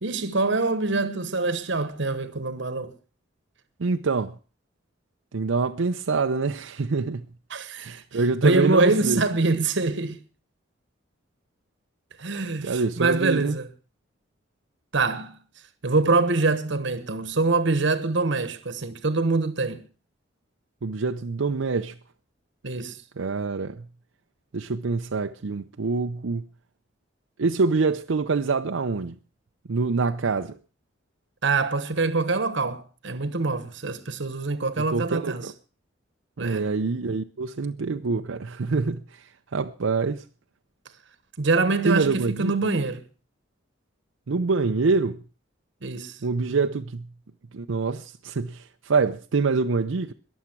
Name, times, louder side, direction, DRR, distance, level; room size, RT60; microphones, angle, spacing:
voice 1, 0.0-2.9 7.5-10.2 12.2-13.7 14.9-15.4 15.8-19.8 22.6-23.0 31.4-35.5 36.4-36.7 41.4-43.0 45.8-46.2, right 3 dB, 65° right, 1.1 m, -25 dB
voice 2, 3.8-4.3 5.3-7.3 7.8-9.2 12.6-13.6 20.8-21.9 23.2-23.9 24.5-26.5 27.4-29.2 29.7-30.6 34.9-35.5 36.4-40.2 41.8-42.5 44.3-45.2 46.2-47.1 47.5-50.1, right 4 dB, 80° right, 0.6 m, -25 dB
21.5 x 7.3 x 6.0 m
head